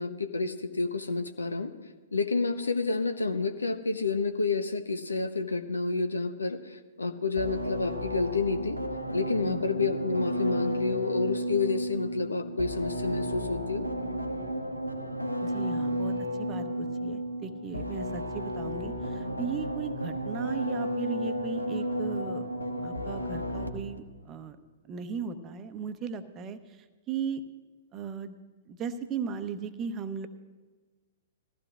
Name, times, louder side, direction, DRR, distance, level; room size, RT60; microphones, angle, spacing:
voice 1, 0.0-1.7 2.1-8.8 9.1-13.9, left 3 dB, 75° left, 9 dB, 0.9 m, -29 dB
sound 1, 7.4-24.0, equal, 90° right, 1.0 m, -33 dB
voice 2, 15.4-16.1 16.4-22.5 22.8-24.6 24.9-27.4 27.9-28.3 28.7-30.3, right 6 dB, 25° right, 9 dB, 0.8 m, -37 dB
20.5 x 15.0 x 2.4 m, 1.3 s
figure-of-eight pair, 110°, 0 cm